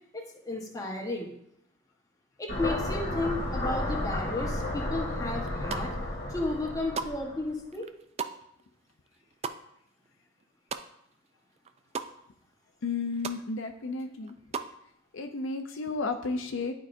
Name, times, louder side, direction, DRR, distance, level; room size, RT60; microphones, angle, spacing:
voice 1, 0.1-1.3 2.4-5.9 6.3-7.9, left 2 dB, 15° left, -1 dB, 1.1 m, -33 dB
sound 1, 2.5-7.4, left 1 dB, 45° left, 1.4 m, -32 dB
sound 2, 5.5-6.1 6.5-11.3 11.5-12.1 12.5-12.6 12.8-13.4 13.8-14.8, right 5 dB, 30° right, 0.3 m, -38 dB
voice 2, 12.8-14.4 15.1-16.7, left 4 dB, 65° left, 6 dB, 0.5 m, -33 dB
11.0 x 4.7 x 2.6 m, 0.77 s
head